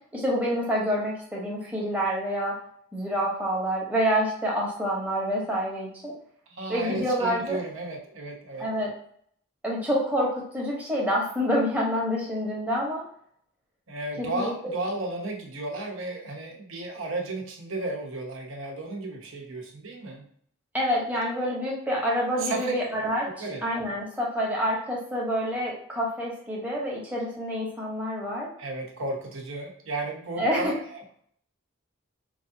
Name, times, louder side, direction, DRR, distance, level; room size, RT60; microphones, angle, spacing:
voice 1, 0.1-2.6 2.9-6.1 6.7-7.6 8.6-8.9 9.6-13.0 14.2-14.5 20.7-23.3 23.6-28.5 30.4-30.7, equal, 5° right, -4 dB, 0.9 m, -27 dB
voice 2, 6.5-8.7 13.9-20.3 22.4-22.7 23.3-23.6 28.6-31.1, right 2 dB, 70° right, 0 dB, 0.9 m, -34 dB
4.8 x 2.4 x 2.7 m, 0.63 s
head